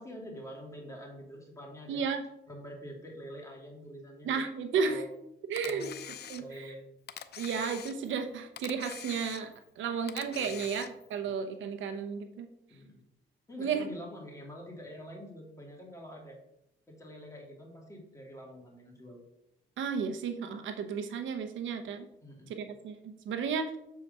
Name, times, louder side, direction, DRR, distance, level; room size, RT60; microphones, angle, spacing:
voice 1, 0.0-2.0 2.5-4.3 4.9-5.1 5.6-6.0 6.4-6.8 10.3-10.6 12.7-13.0 13.5-16.4 16.9-19.2 22.2-22.5, equal, 15° left, -1 dB, 2.8 m, -46 dB
voice 2, 1.9-2.2 4.2-5.1 5.5-5.9 6.3-6.7 7.4-12.5 13.6-13.8 19.8-22.1 22.5-23.8, right 6 dB, 75° right, 7 dB, 0.9 m, -33 dB
Camera, 5.6-6.7 7.1-8.2 8.6-9.7 10.1-11.1, left 9 dB, 55° left, 0.6 m, -44 dB
7.3 x 4.8 x 5.4 m, 0.81 s
cardioid pair, 90°, 20 cm